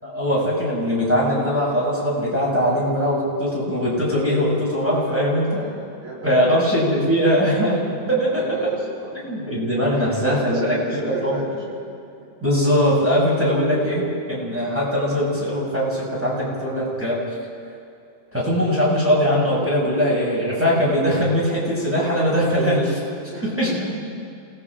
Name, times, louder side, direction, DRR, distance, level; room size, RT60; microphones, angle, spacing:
voice 1, 0.0-5.6 6.2-7.8 8.1-8.8 9.2-11.4 12.4-17.2 18.3-23.0 23.4-23.7, equal, 5° right, -6 dB, 6.9 m, -21 dB
voice 2, 5.0-6.6 8.3-9.2 9.9-11.9 12.2-12.3 23.3-24.0, right 1 dB, 75° right, -5 dB, 5.4 m, -35 dB
28.0 x 19.5 x 5.0 m, 2.5 s
omnidirectional pair, 2.3 m